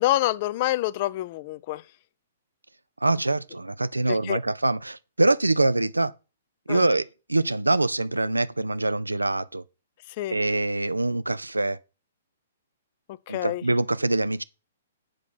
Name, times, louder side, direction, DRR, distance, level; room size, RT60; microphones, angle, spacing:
voice 1, 0.0-1.8 4.1-4.4 6.7-6.9 10.1-10.4 13.1-13.6, left 16 dB, 40° left, 0.5 m, -27 dB
voice 2, 3.0-6.1 6.7-9.6 10.3-11.8 13.3-14.4, right 2 dB, 85° right, 0.5 m, -24 dB
7.5 x 5.9 x 6.2 m
figure-of-eight pair, 120°, 0 cm